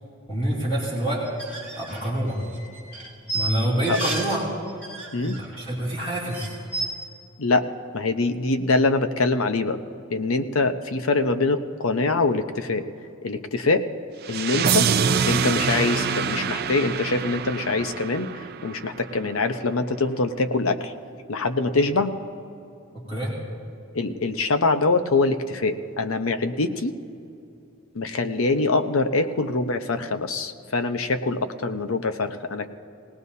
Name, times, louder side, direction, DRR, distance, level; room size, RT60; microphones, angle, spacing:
voice 1, 0.3-1.3 1.8-2.4 3.3-4.4 5.4-6.6 21.7-21.8 22.9-23.3, right 1 dB, 25° left, -7 dB, 3.0 m, -26 dB
sound 1, 1.3-4.4 4.7-5.6 5.9-6.0 6.2-6.9, right 2 dB, 5° left, 3.7 m, -32 dB
voice 2, 7.9-9.8 10.1-12.9 13.2-13.9 14.3-14.9 15.3-20.9 21.3-22.1 23.9-26.9 27.9-32.7, left 3 dB, 75° left, 8 dB, 0.8 m, -24 dB
sound 2, 14.2-19.2, right 6 dB, 50° right, 0.5 m, -25 dB
19.5 x 18.5 x 2.8 m, 2.6 s
head